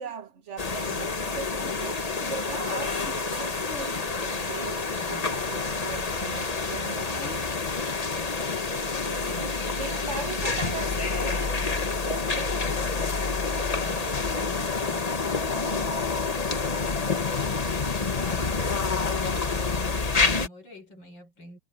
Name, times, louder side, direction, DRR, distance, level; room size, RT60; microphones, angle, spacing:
voice 1, 0.0-7.5 8.7-12.7 15.5-15.8, right 6 dB, 40° right, 1.6 m, -39 dB
sound 1, 0.6-20.5, left 4 dB, 25° left, 0.9 m, -28 dB
voice 2, 5.0-5.4 16.7-21.6, equal, 75° left, 6.2 m, -48 dB
omnidirectional pair, 2.0 m